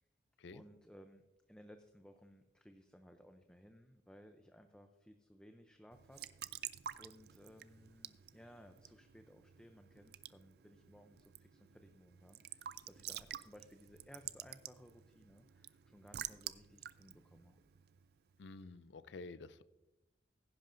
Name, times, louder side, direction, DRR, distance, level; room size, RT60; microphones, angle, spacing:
voice 1, 0.5-6.2 6.5-6.7 7.0-17.6, equal, 5° left, 6 dB, 0.5 m, -60 dB
Raindrop / Drip / Trickle dribble, 5.9-18.4, right 11 dB, 60° right, 0.4 m, -50 dB
voice 2, 18.4-19.6, left 3 dB, 70° left, 15 dB, 0.5 m, -50 dB
16.0 x 10.5 x 2.6 m, 0.98 s
head